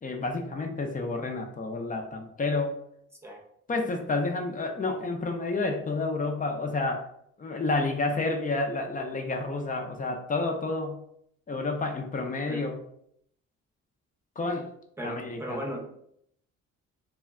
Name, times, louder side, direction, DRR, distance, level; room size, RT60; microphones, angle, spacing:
voice 1, 0.0-2.8 3.7-7.1 7.4-11.0 11.5-12.8 14.4-14.6 15.0-15.6, left 3 dB, 25° left, 4 dB, 0.5 m, -30 dB
voice 2, 15.0-15.8, equal, 10° right, 0 dB, 0.7 m, -36 dB
2.2 x 2.2 x 3.5 m, 0.70 s
cardioid pair, 90°, 30 cm